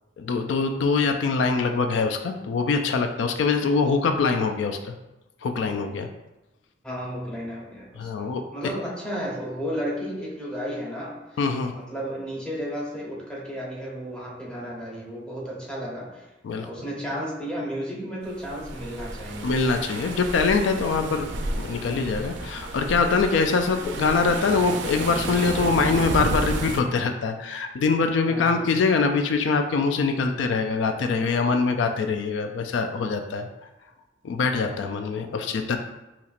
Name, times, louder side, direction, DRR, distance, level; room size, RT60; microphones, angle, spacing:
voice 1, 0.2-4.9 5.4-6.1 8.0-8.4 11.4-11.7 16.4-16.7 19.4-21.3 21.6-33.5 34.2-35.8, left 4 dB, 85° left, 6 dB, 0.3 m, -23 dB
voice 2, 6.8-11.2 11.7-16.3 16.6-19.5 28.3-28.7, equal, 5° left, -4 dB, 0.8 m, -33 dB
sound 1, 18.3-26.8, right 2 dB, 70° right, 0.4 m, -32 dB
4.2 x 2.9 x 2.4 m, 1.0 s
head